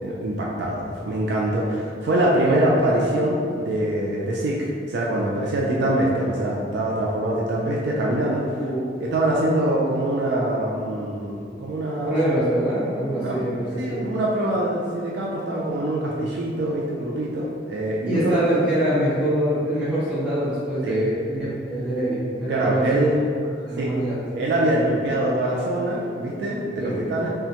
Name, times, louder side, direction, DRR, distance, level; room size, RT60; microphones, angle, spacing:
voice 1, 0.0-8.4 9.0-12.1 13.1-13.4 13.8-18.4 20.8-21.1 22.5-23.1 23.8-23.9 24.3-27.3, right 1 dB, 65° right, -3 dB, 0.3 m, -24 dB
voice 2, 8.5-9.0 12.0-14.1 18.1-23.2 23.6-24.2 26.8-27.0, right 1 dB, 10° right, -12 dB, 1.0 m, -24 dB
3.3 x 2.0 x 2.8 m, 2.2 s
head